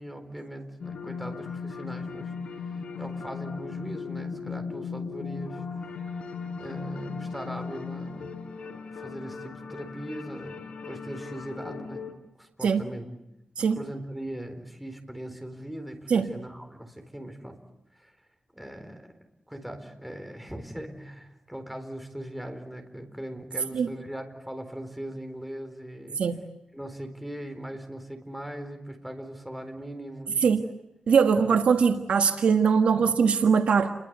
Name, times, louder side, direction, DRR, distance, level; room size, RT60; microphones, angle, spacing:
voice 1, 0.0-2.3 2.7-5.6 6.6-10.6 10.8-12.0 12.4-13.1 13.8-17.6 18.0-18.1 18.5-19.1 19.5-26.2 26.7-30.6, right 1 dB, 5° right, 6 dB, 4.2 m, -40 dB
sound 1, 0.8-12.1, left 5 dB, 65° left, 4.8 m, -37 dB
voice 2, 31.1-33.9, right 6 dB, 75° right, 5 dB, 1.6 m, -21 dB
30.0 x 23.0 x 8.2 m, 0.88 s
wide cardioid pair, 135°, 2 cm